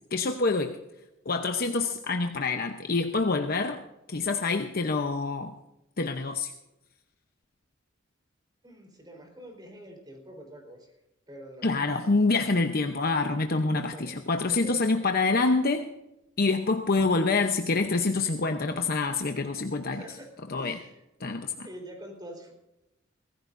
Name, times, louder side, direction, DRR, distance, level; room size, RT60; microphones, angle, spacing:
voice 1, 0.1-0.7 1.3-3.8 4.1-5.5 6.0-6.5 11.6-15.9 16.4-20.0 20.5-20.8 21.2-21.7, left 3 dB, 50° left, 5 dB, 0.8 m, -26 dB
voice 2, 8.6-10.9 11.3-12.1 13.7-14.1 14.5-15.0 19.9-20.3 20.6-21.0 21.6-22.5, right 1 dB, 20° right, 2 dB, 4.1 m, -45 dB
24.0 x 15.5 x 2.6 m, 0.93 s
head